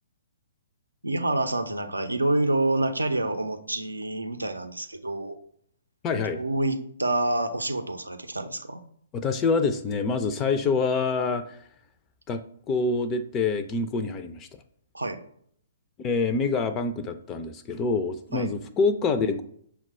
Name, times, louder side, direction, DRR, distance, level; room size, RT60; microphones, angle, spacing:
voice 1, 1.0-5.4 6.1-8.8 14.9-15.2 18.3-18.5, right 2 dB, 85° right, 7 dB, 0.5 m, -27 dB
voice 2, 6.0-6.4 9.1-11.6 12.3-14.5 16.0-19.4, left 4 dB, 25° left, 9 dB, 0.3 m, -26 dB
5.8 x 2.2 x 4.2 m, 0.64 s
figure-of-eight pair, 120°, 0 cm